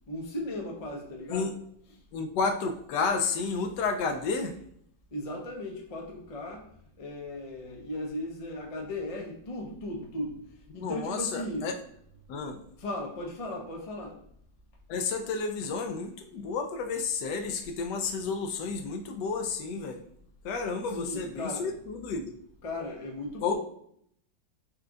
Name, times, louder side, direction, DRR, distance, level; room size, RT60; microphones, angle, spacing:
voice 1, 0.1-1.5 5.1-6.6 7.0-10.4 10.7-11.7 12.8-14.2 20.9-21.7 22.6-23.5, left 1 dB, 45° left, 0 dB, 0.4 m, -36 dB
voice 2, 2.1-4.6 10.8-11.8 12.3-12.6 14.9-20.0 20.4-22.3 23.4-23.5, left 4 dB, 80° left, 6 dB, 1.2 m, -31 dB
4.4 x 2.3 x 3.7 m, 0.67 s
omnidirectional pair, 1.9 m